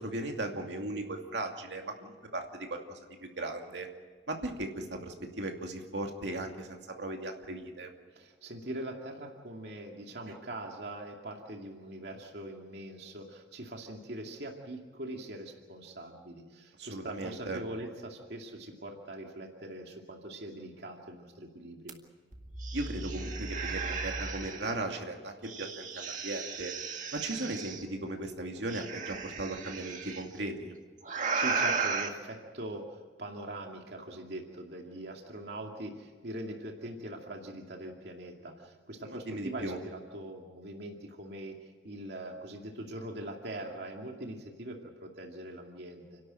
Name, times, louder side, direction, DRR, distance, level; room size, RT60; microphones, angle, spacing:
voice 1, 0.0-3.9 4.3-7.9 16.8-17.6 22.7-26.7 27.1-30.8 39.0-39.8, right 2 dB, 90° right, 3 dB, 2.5 m, -37 dB
voice 2, 8.1-22.0 31.3-46.2, right 1 dB, 70° right, 1 dB, 2.3 m, -42 dB
sound 1, 21.9-22.0 22.3-24.7 25.4-27.8 28.7-30.2 31.0-32.1, right 4 dB, 45° right, 2.0 m, -35 dB
30.0 x 12.0 x 9.0 m, 1.5 s
head